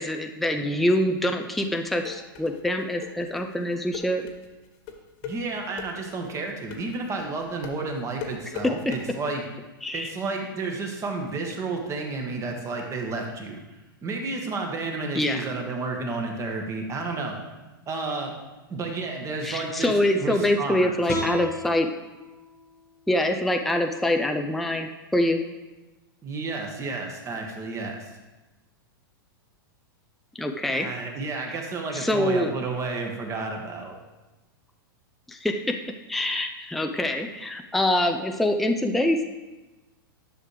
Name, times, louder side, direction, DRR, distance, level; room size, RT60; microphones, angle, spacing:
voice 1, 0.0-4.3 9.8-10.1 15.2-15.4 19.4-21.9 23.1-25.4 30.4-30.9 31.9-32.5 35.3-35.8 36.1-39.3, left 1 dB, ahead, 4 dB, 0.5 m, -25 dB
sound 1, 1.6-9.0, left 7 dB, 45° left, 1.4 m, -39 dB
voice 2, 5.2-9.4 9.9-13.6 14.0-17.4 17.9-18.3 18.7-20.9 26.2-28.1 30.6-34.0, right 3 dB, 25° right, 2 dB, 1.5 m, -31 dB
sound 2, 21.1-24.2, left 2 dB, 25° left, 1.4 m, -36 dB
11.0 x 6.5 x 3.3 m, 1.1 s
hypercardioid pair, 115°, 12 cm